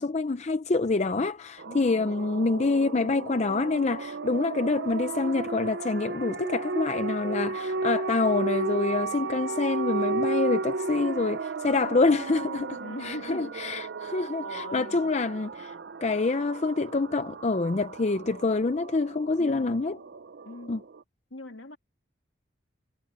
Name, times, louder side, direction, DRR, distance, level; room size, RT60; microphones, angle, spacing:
voice 1, 0.0-15.7 16.0-20.0 20.7-20.8, left 3 dB, 35° left, 0.5 m, -26 dB
voice 2, 1.6-2.1 12.8-13.5 13.8-13.9 14.4-15.1 19.4-19.8 20.4-20.7 21.3-21.8, left 2 dB, 65° left, 2.7 m, -41 dB
sound 1, 1.6-21.0, right 3 dB, 55° right, 0.5 m, -34 dB
head